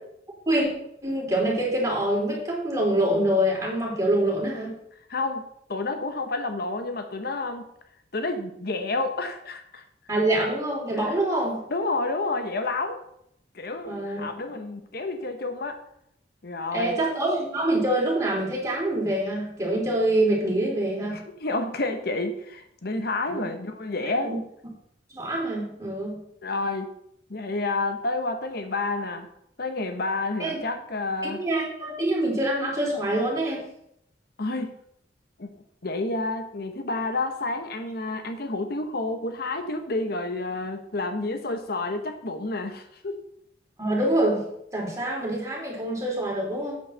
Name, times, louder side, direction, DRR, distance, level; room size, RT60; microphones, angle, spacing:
voice 1, 1.0-4.7 10.1-11.6 13.9-14.3 16.7-21.2 23.3-23.5 24.2-24.4 25.1-26.2 30.4-30.6 31.2-33.7 43.8-44.4 44.7-46.7, right 1 dB, 20° right, -3 dB, 3.8 m, -25 dB
voice 2, 5.1-7.6 8.1-9.8 11.0-11.1 11.7-13.0 13.5-15.8 16.4-17.0 21.1-24.3 26.4-26.9 27.3-29.3 29.6-31.4 34.4-34.7 35.4-35.5 35.8-43.2, left 2 dB, 60° left, 7 dB, 1.0 m, -29 dB
8.5 x 6.4 x 6.5 m, 0.74 s
head